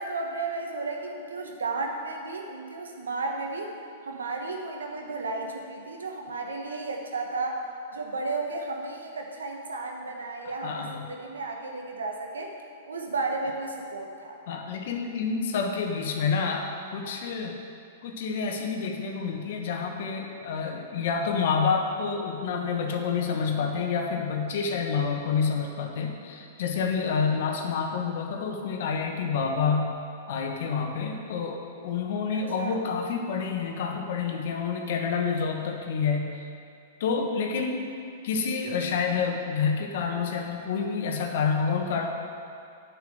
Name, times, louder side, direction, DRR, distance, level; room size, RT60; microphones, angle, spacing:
voice 1, 0.0-3.7 4.0-7.6 7.9-12.5 12.9-14.4 32.3-32.8, right 3 dB, 85° right, 2 dB, 1.1 m, -33 dB
voice 2, 10.4-11.1 14.5-17.5 18.0-30.0 30.3-36.5 37.0-37.8 38.2-42.1, left 5 dB, 65° left, 3 dB, 1.2 m, -28 dB
7.4 x 5.8 x 7.7 m, 2.4 s
hypercardioid pair, 115°, 0 cm